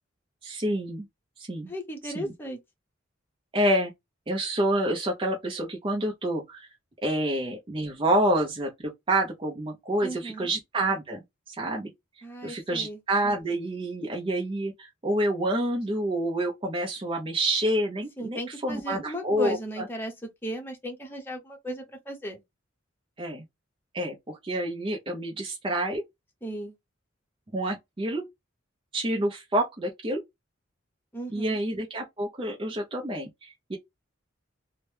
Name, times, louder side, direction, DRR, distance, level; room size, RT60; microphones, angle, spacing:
voice 1, 0.4-1.0 1.4-1.7 2.0-2.3 3.5-3.9 4.3-6.7 7.0-11.9 12.4-19.9 23.2-23.4 23.9-26.0 27.5-28.2 28.9-30.2 31.3-33.8, right 1 dB, 25° right, 0.7 m, -28 dB
voice 2, 1.7-2.6 10.0-10.5 12.2-13.0 18.2-22.4 26.4-26.7 31.1-31.6, equal, 10° left, 0.8 m, -36 dB
2.9 x 2.1 x 3.3 m
head